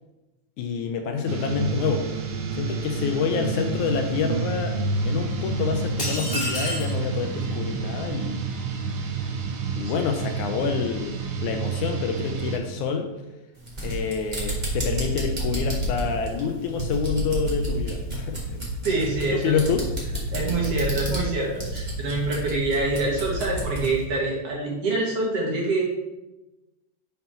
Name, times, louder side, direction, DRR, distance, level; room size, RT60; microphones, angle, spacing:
voice 1, 0.6-2.1 2.6-8.4 9.8-13.1 13.8-18.6 19.3-19.9, left 6 dB, 80° left, 4 dB, 1.9 m, -27 dB
sound 1, 1.3-12.6, right 4 dB, 70° right, 2.3 m, -29 dB
sound 2, 6.0-7.0, equal, 20° left, 1.8 m, -29 dB
sound 3, 13.6-24.0, equal, 20° right, 1.1 m, -30 dB
voice 2, 18.8-19.6 20.3-25.8, right 2 dB, 55° right, -3 dB, 2.2 m, -26 dB
5.9 x 5.5 x 5.6 m, 1.0 s
omnidirectional pair, 3.8 m